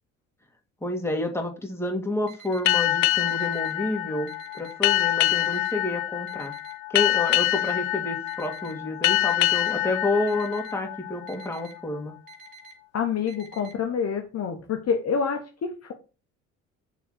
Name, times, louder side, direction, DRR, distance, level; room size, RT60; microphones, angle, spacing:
voice 1, 0.8-6.6 6.9-12.1, left 2 dB, 5° left, 2 dB, 2.4 m, -29 dB
Alarm, 2.3-2.7 3.3-3.7 4.3-4.7 5.3-5.7 6.3-6.7 7.3-7.7 8.3-8.7 9.3-9.7 10.3-10.7 11.3-11.7 12.3-12.7 13.3-13.7, right 5 dB, 60° right, 2.1 m, -47 dB
sound 1, 2.7-11.8, left 15 dB, 75° left, 0.6 m, -25 dB
voice 2, 12.9-15.9, left 6 dB, 40° left, 5 dB, 1.2 m, -27 dB
6.9 x 4.1 x 6.6 m, 0.33 s
figure-of-eight pair, 55°, 37 cm